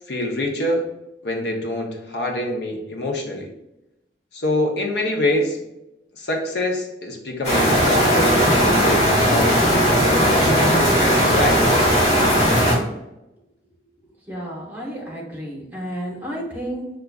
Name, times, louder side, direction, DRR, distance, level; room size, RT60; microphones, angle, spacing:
voice 1, 0.1-0.9 1.2-3.5 4.3-5.6 6.2-8.4 8.8-10.8 11.3-11.7, left 1 dB, 70° left, 2 dB, 0.7 m, -25 dB
sound 1, 7.4-12.7, equal, 35° left, 1.4 m, -17 dB
voice 2, 14.3-17.0, equal, 10° right, -3 dB, 0.9 m, -31 dB
4.8 x 2.3 x 2.3 m, 0.90 s
head